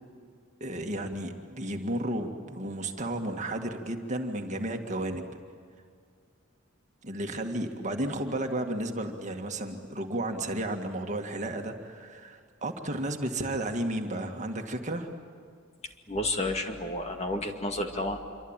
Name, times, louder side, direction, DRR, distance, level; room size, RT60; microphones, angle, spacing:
voice 1, 0.6-5.2 7.0-15.1, right 1 dB, 35° right, 4 dB, 2.0 m, -33 dB
voice 2, 16.1-18.2, left 1 dB, 30° left, 4 dB, 2.3 m, -31 dB
27.0 x 24.5 x 9.0 m, 2.2 s
head